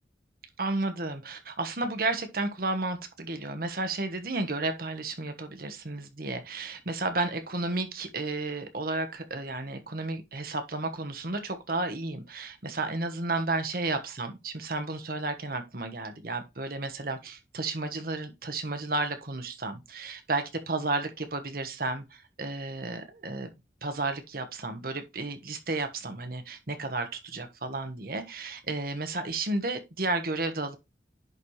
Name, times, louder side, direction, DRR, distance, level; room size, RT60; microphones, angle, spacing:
voice 1, 0.6-23.5 23.8-30.8, right 2 dB, 55° right, 1.3 m, -32 dB
10.5 x 4.3 x 3.2 m
head